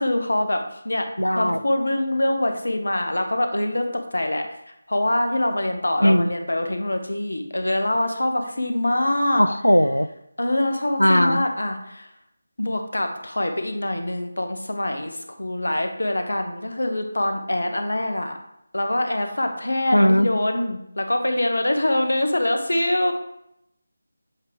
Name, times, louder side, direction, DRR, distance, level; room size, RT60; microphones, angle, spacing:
voice 1, 0.0-1.1 1.4-9.4 10.4-12.1 12.6-18.3 18.7-23.1, left 1 dB, 70° left, 5 dB, 1.0 m, -24 dB
voice 2, 1.2-1.6 6.0-6.3 9.4-10.1 11.0-11.4 19.9-20.3, equal, 85° left, 12 dB, 0.4 m, -18 dB
7.7 x 3.6 x 3.7 m, 0.78 s
figure-of-eight pair, 160°, 0 cm